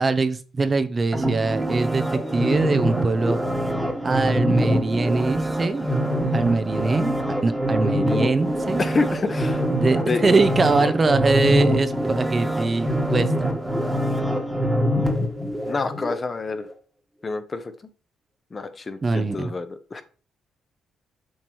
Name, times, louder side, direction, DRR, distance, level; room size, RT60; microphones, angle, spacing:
voice 1, 0.0-3.4 4.0-5.9 6.3-7.1 7.4-8.8 9.8-13.6 19.0-19.5, right 3 dB, 30° right, 11 dB, 0.6 m, -22 dB
sound 1, 1.1-16.2 16.6-16.7, equal, 5° right, 1.5 m, -24 dB
voice 2, 8.8-9.6 10.0-10.2 15.6-16.7 17.2-17.6 18.5-20.0, left 3 dB, 30° left, 9 dB, 1.0 m, -27 dB
7.4 x 5.9 x 3.1 m, 0.37 s
cardioid pair, 90°, 0 cm